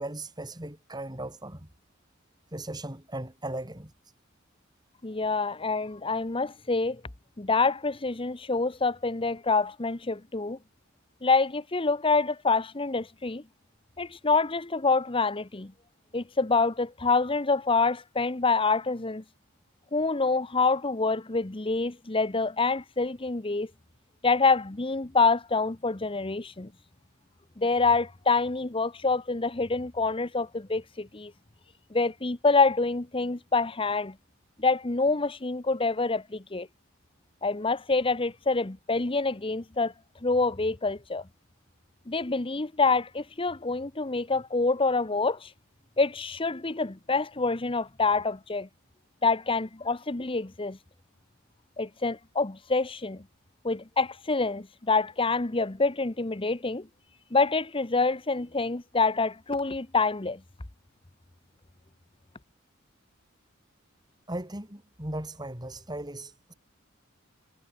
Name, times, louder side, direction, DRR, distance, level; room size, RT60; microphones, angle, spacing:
voice 1, 0.0-1.7 2.5-3.9 64.3-66.5, right 1 dB, 20° right, 3.2 m, -37 dB
voice 2, 5.0-7.0 7.4-10.6 11.2-13.4 14.0-15.7 16.1-19.2 19.9-23.7 24.2-26.7 27.6-31.3 31.9-34.2 34.6-36.7 37.4-39.9 40.2-41.2 42.1-45.5 46.0-48.7 49.2-50.8 51.8-53.2 53.6-56.9 57.3-60.4, left 3 dB, 25° left, 0.9 m, -26 dB
head